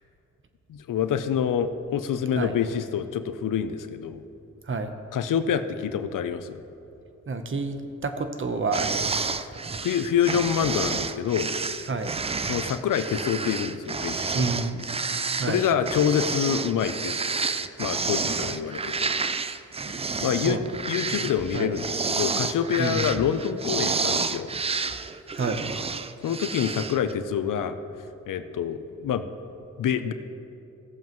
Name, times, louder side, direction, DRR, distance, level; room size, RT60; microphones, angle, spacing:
voice 1, 0.7-4.2 5.1-6.6 9.8-11.5 12.4-14.4 15.5-17.2 17.8-19.1 19.9-20.6 20.9-24.5 26.2-27.8 28.3-29.2 29.8-30.1, left 8 dB, 90° left, 10 dB, 0.6 m, -26 dB
voice 2, 7.3-9.5 11.9-12.2 14.3-14.8 15.4-15.6 20.4-20.6 21.1-21.8 22.8-23.1 25.4-25.6, right 3 dB, 40° right, 7 dB, 0.9 m, -29 dB
sound 1, 8.7-27.1, right 4 dB, 20° right, 0.3 m, -30 dB
17.0 x 7.3 x 3.1 m, 2.8 s
cardioid pair, 75°, 31 cm